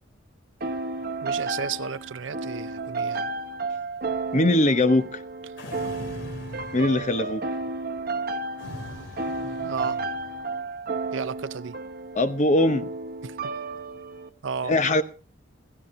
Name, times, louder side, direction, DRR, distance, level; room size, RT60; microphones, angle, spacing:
sound 1, 0.6-14.3, right 3 dB, 50° right, 1.0 m, -32 dB
voice 1, 1.2-3.3 9.6-10.0 11.1-11.7 13.2-13.4 14.4-14.8, right 6 dB, 80° right, 0.6 m, -33 dB
voice 2, 4.3-5.2 6.7-7.4 12.1-12.9 14.6-15.0, left 1 dB, 40° left, 0.9 m, -21 dB
sound 2, 5.6-7.4 8.6-10.4, left 1 dB, 70° left, 3.0 m, -41 dB
16.5 x 16.0 x 2.7 m
head